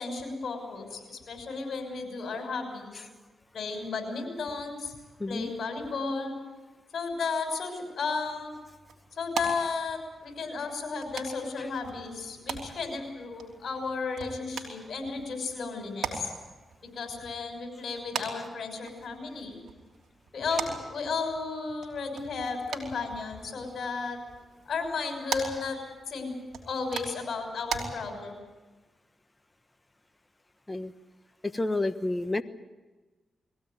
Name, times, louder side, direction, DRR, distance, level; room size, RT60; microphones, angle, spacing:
voice 1, 0.0-2.9 3.5-5.0 5.3-6.5 6.9-8.5 9.2-16.3 16.9-19.6 20.3-24.2 24.7-25.8 26.1-26.3 26.7-28.4, left 4 dB, 65° left, 4 dB, 5.9 m, -34 dB
voice 2, 5.2-5.5 30.7-30.9 31.4-32.4, left 2 dB, 20° left, 11 dB, 1.2 m, -29 dB
sound 1, 8.0-27.8, right 6 dB, 80° right, 3.3 m, -42 dB
22.0 x 16.0 x 9.2 m, 1.2 s
cardioid pair, 60°, 0 cm